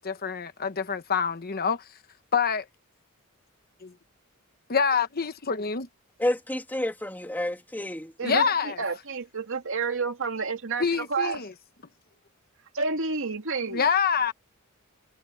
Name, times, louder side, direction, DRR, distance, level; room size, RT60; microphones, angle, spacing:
voice 1, 0.0-1.9 2.3-2.7 3.8-3.9 4.7-5.9 8.2-8.8 10.8-11.5 13.7-14.3, left 6 dB, 45° left, 1.1 m, -26 dB
voice 2, 6.2-8.1, left 1 dB, 10° left, 2.2 m, -29 dB
voice 3, 8.2-11.4 12.7-13.9, right 4 dB, 65° right, 2.3 m, -30 dB
head